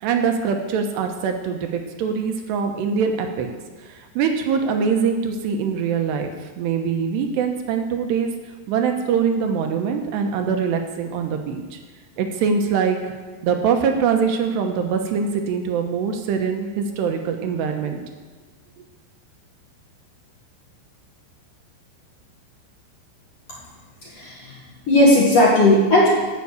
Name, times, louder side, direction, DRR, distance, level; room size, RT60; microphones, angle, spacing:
voice 1, 0.0-3.5 3.8-8.3 8.7-11.8 12.2-13.0 13.4-18.0, right 6 dB, 75° right, 4 dB, 2.9 m, -23 dB
voice 2, 24.0-24.6 24.9-26.1, left 1 dB, 45° left, -5 dB, 2.2 m, -16 dB
14.0 x 6.1 x 8.2 m, 1.4 s
omnidirectional pair, 5.6 m